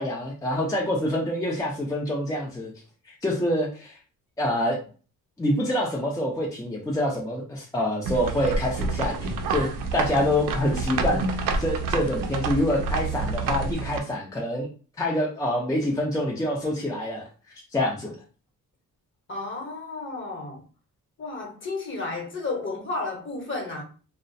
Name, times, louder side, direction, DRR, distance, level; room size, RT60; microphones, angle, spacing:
voice 1, 0.0-2.7 3.1-4.0 4.4-4.8 5.4-14.7 15.0-17.3 17.7-18.2, left 1 dB, 10° left, 0.5 m, -26 dB
sound 1, 8.0-14.0, right 3 dB, 80° right, 0.5 m, -28 dB
voice 2, 19.3-20.6 21.2-23.8, left 3 dB, 35° left, 0.9 m, -32 dB
2.3 x 2.1 x 2.5 m
cardioid pair, 100°, 33 cm